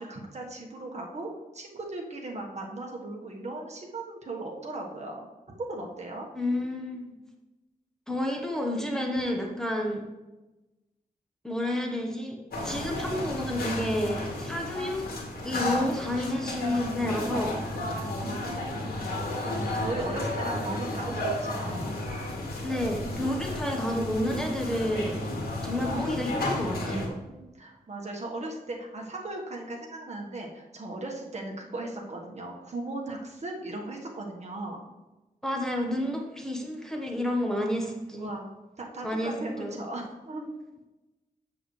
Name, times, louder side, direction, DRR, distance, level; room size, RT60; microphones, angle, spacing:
voice 1, 0.0-6.3 18.2-18.9 19.4-21.8 27.2-34.8 37.7-37.9 38.2-38.4 38.8-40.4, right 2 dB, 45° right, 0 dB, 1.5 m, -37 dB
voice 2, 6.3-7.2 8.1-10.0 11.4-15.0 15.4-17.5 22.6-25.2 25.6-27.1 35.4-38.3 39.0-39.8, left 1 dB, 5° left, 0 dB, 1.1 m, -30 dB
sound 1, 12.5-27.1, left 1 dB, 75° left, 2.1 m, -32 dB
7.9 x 7.7 x 3.3 m, 1.1 s
wide cardioid pair, 100°, 16 cm